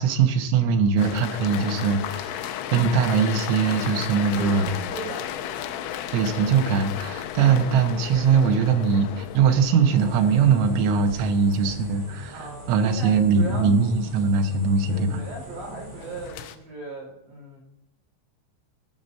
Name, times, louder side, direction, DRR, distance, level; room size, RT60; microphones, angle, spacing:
voice 1, 0.0-4.7 6.1-12.3 12.7-15.2, right 5 dB, 75° right, 5 dB, 3.3 m, -21 dB
sound 1, 1.0-12.5 16.0-16.6, left 10 dB, 80° left, 2.9 m, -34 dB
voice 2, 4.1-5.9 12.3-13.7 14.9-17.6, right 2 dB, 55° right, -3 dB, 6.8 m, -38 dB
sound 2, 10.0-16.3, right 2 dB, 35° right, 5.1 m, -42 dB
18.0 x 6.0 x 5.4 m, 0.79 s
omnidirectional pair, 5.8 m